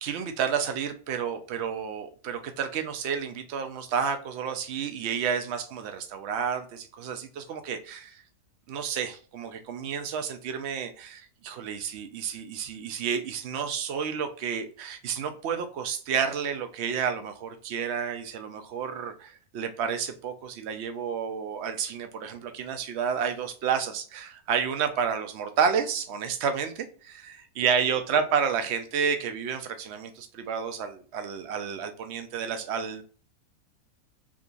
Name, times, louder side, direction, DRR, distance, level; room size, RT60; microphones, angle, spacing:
voice 1, 0.0-8.2 8.7-33.0, right 7 dB, 60° right, 8 dB, 0.7 m, -30 dB
3.7 x 2.8 x 2.5 m, 0.40 s
omnidirectional pair, 1.6 m